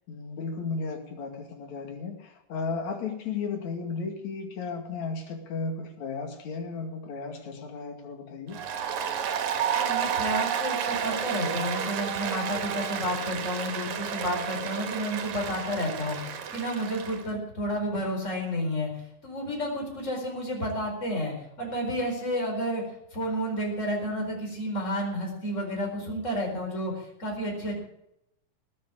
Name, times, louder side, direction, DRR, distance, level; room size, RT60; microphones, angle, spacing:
voice 1, 0.1-8.6, left 4 dB, 65° left, 3 dB, 3.6 m, -34 dB
Applause, 8.5-17.2, right 8 dB, 70° right, 2.8 m, -31 dB
voice 2, 9.7-18.9 19.2-22.8 23.1-27.7, equal, 20° left, 0 dB, 4.8 m, -31 dB
19.0 x 7.7 x 8.6 m, 0.79 s
omnidirectional pair, 3.5 m